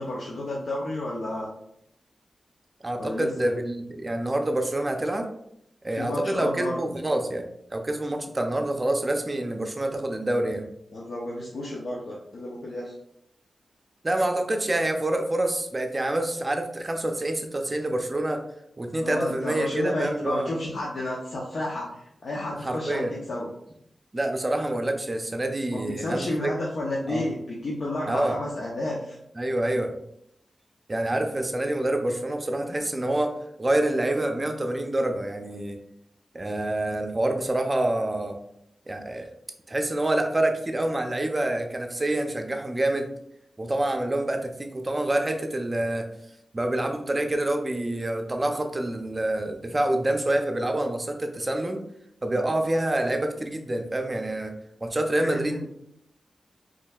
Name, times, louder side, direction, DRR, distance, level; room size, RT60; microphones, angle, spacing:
voice 1, 0.0-1.5 3.0-3.5 5.9-6.8 10.9-12.9 19.0-23.5 25.7-29.2 55.2-55.6, left 1 dB, 80° left, -5 dB, 0.7 m, -31 dB
voice 2, 2.8-5.3 5.8-10.7 14.0-18.4 18.8-20.5 22.6-23.1 24.1-26.5 27.1-27.2 28.1-28.4 29.4-29.9 30.9-33.3 33.6-35.8 36.3-38.4 38.9-39.3 39.7-43.1 43.6-46.1 46.5-51.8 52.2-54.5 54.8-55.6, right 1 dB, 30° right, 4 dB, 0.6 m, -27 dB
4.3 x 3.1 x 2.3 m, 0.76 s
cardioid pair, 65°, 0 cm